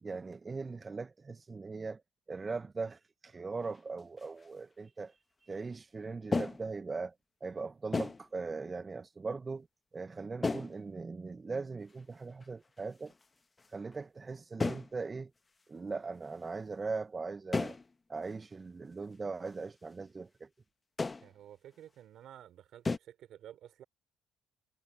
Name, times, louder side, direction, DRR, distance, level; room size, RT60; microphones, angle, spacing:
voice 1, 0.0-2.0 2.3-5.2 5.4-7.1 7.4-9.7 9.9-13.1 13.7-15.3 15.7-17.8 18.1-20.5, right 4 dB, 25° right, 0.3 m, -40 dB
sound 1, 3.6-3.8 4.2-4.5 6.3-6.7 7.9-8.3 10.4-10.8 11.9-12.0 12.4-12.8 13.1-13.2 13.6-14.0 14.6-14.9 17.5-17.9 18.3-18.4 19.0-19.1 21.0-21.3 22.8-23.0, left 3 dB, 25° left, 0.8 m, -34 dB
voice 2, 21.2-23.8, right 11 dB, 70° right, 3.4 m, -52 dB
cardioid pair, 95°, 0 cm